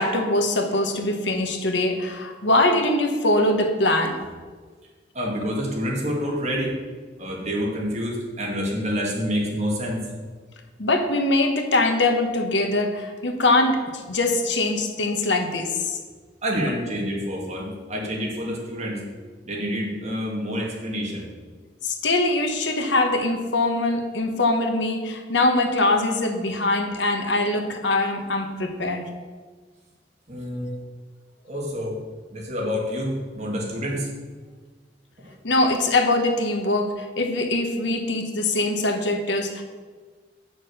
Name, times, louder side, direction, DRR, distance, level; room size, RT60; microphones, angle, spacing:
voice 1, 0.0-4.2 10.8-16.0 21.8-29.1 30.6-30.8 35.4-39.6, left 2 dB, 80° left, 5 dB, 1.2 m, -22 dB
voice 2, 5.1-6.8 7.2-10.1 16.4-19.0 19.5-21.3 30.3-30.8 31.4-32.0 32.3-34.1 35.2-35.3, equal, 40° right, -2 dB, 2.2 m, -28 dB
8.4 x 6.5 x 6.5 m, 1.5 s
head